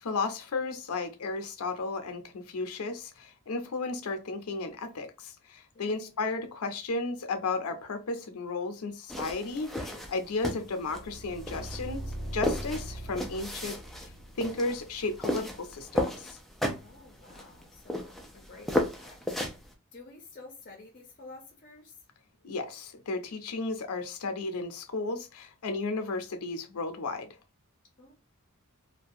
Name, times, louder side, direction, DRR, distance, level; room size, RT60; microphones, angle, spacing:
voice 1, 0.0-12.0 12.3-14.1 14.3-16.4 22.4-27.3, left 3 dB, 85° left, 0.6 m, -34 dB
voice 2, 5.7-6.1 10.2-10.6 16.8-19.2 19.5-22.0 28.0-28.1, left 3 dB, 40° left, 0.6 m, -51 dB
sound 1, 9.1-19.7, left 1 dB, ahead, 0.3 m, -34 dB
sound 2, 10.7-15.7, right 1 dB, 60° right, 1.0 m, -41 dB
2.4 x 2.2 x 2.6 m
head